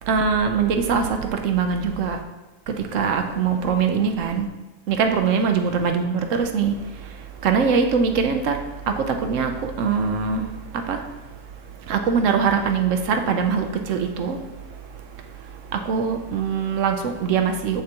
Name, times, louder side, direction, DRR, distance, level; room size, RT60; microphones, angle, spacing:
voice 1, 0.0-2.2 2.7-4.5 4.9-17.8, right 6 dB, 65° right, 0.9 m, -23 dB
7.7 x 6.8 x 2.9 m
omnidirectional pair, 1.7 m